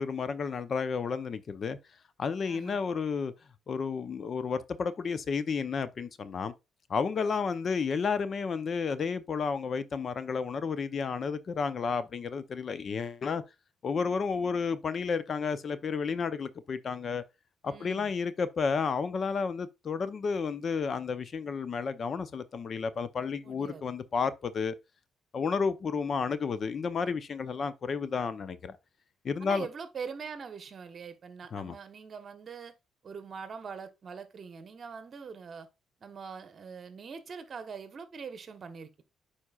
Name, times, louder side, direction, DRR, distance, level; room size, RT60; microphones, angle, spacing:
voice 1, 0.0-1.8 2.2-3.3 3.7-6.5 6.9-13.4 13.8-17.2 17.6-24.7 25.3-28.8 29.2-29.7 31.5-31.7, left 5 dB, 50° left, 0.7 m, -31 dB
voice 2, 2.5-2.8 17.7-18.1 23.4-23.9 29.4-32.7 33.0-35.7 36.0-39.0, right 6 dB, 50° right, 1.1 m, -43 dB
9.5 x 4.3 x 2.4 m
cardioid pair, 90°, 0 cm